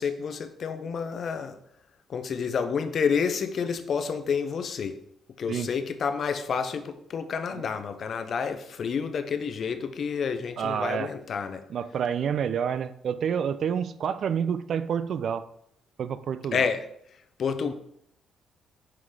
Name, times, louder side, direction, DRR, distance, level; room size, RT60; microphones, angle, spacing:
voice 1, 0.0-1.6 2.1-5.0 5.4-11.6 16.5-16.8 17.4-17.7, left 6 dB, 55° left, 0.6 m, -29 dB
voice 2, 10.6-11.1 11.7-15.4 16.0-16.7, right 7 dB, 60° right, 0.4 m, -28 dB
5.8 x 4.7 x 3.7 m
cardioid pair, 90°, 0 cm